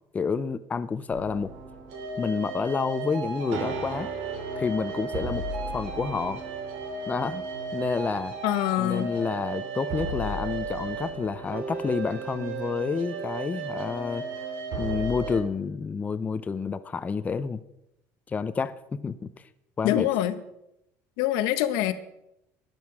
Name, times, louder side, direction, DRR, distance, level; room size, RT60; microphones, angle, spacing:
voice 1, 0.1-1.5 2.2-4.1 4.6-5.5 5.7-6.4 7.1-7.4 7.7-8.3 8.8-14.3 14.8-17.6 18.3-18.7 19.0-19.3 19.8-20.1, left 5 dB, 20° left, 12 dB, 0.6 m, -29 dB
sound 1, 1.1-15.4, right 3 dB, 90° right, 2.7 m, -34 dB
voice 2, 8.4-9.1 19.8-20.4 21.2-21.9, left 13 dB, 80° left, 11 dB, 1.0 m, -24 dB
13.0 x 10.5 x 4.8 m, 0.84 s
cardioid pair, 135°, 8 cm